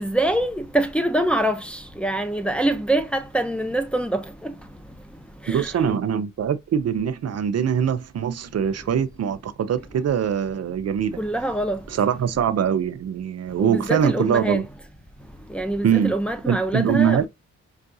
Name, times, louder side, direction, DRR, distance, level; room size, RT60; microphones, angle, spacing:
voice 1, 0.0-4.5 5.4-5.7 11.2-11.8 13.6-14.6 15.5-17.3, right 1 dB, 5° left, 0.5 m, -24 dB
voice 2, 5.5-11.2 11.9-14.6 15.8-16.1 16.5-17.3, right 8 dB, 55° right, 0.5 m, -23 dB
5.4 x 2.4 x 2.6 m
cardioid pair, 90°, 30 cm